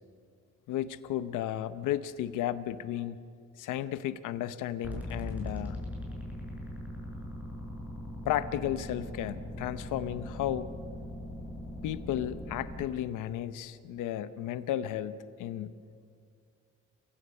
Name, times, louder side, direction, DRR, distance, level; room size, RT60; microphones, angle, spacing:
voice 1, 0.7-3.2 3.6-5.8 8.2-10.7 11.8-15.7, left 11 dB, 90° left, 13 dB, 0.9 m, -33 dB
sound 1, 4.8-12.8, left 1 dB, 5° right, 5.8 m, -40 dB
29.0 x 16.5 x 5.6 m, 2.3 s
cardioid pair, 90°, 30 cm